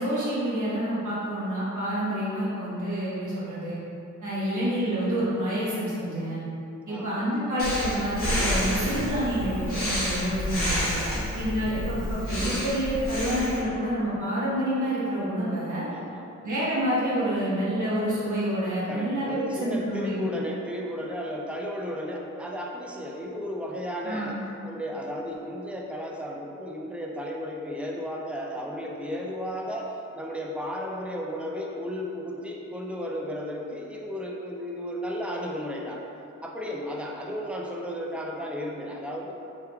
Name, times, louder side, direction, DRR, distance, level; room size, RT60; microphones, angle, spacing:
voice 1, 0.0-3.8 4.2-6.4 6.9-10.9 11.3-15.9 16.4-20.2 24.0-24.4, equal, 65° right, -9 dB, 1.2 m, -28 dB
Breathing, 7.6-13.6, equal, 80° left, 1.1 m, -29 dB
voice 2, 11.0-11.4 15.9-16.3 18.9-36.0 36.4-39.3, equal, 5° right, -1 dB, 0.4 m, -34 dB
3.5 x 3.0 x 2.2 m, 2.7 s
cardioid pair, 50°, 32 cm